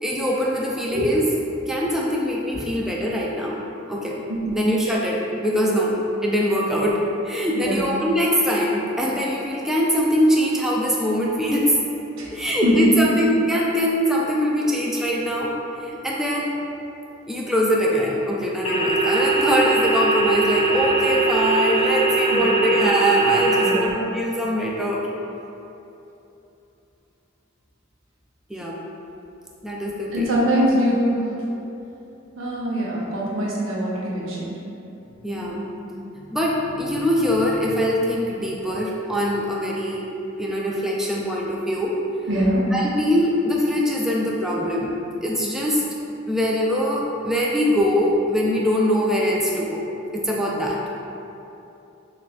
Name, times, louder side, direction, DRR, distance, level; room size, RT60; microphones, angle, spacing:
voice 1, 0.0-1.3 1.7-3.6 3.9-4.2 4.5-6.0 6.2-11.8 12.3-16.6 17.3-25.1 28.5-28.8 29.6-30.3 35.2-35.6 36.3-40.1 40.4-42.0 42.7-44.9 45.2-45.8 46.3-49.9 50.1-50.8, equal, ahead, -4 dB, 0.3 m, -22 dB
voice 2, 7.5-7.8 12.2-12.3 12.6-12.9 22.3-22.4 23.5-24.0 30.1-31.3 32.4-34.6 35.4-35.8 42.3-42.7, equal, 85° right, -4 dB, 0.8 m, -23 dB
sound 1, 18.6-23.7, right 3 dB, 30° left, 0.7 m, -21 dB
6.8 x 2.4 x 2.3 m, 2.9 s
head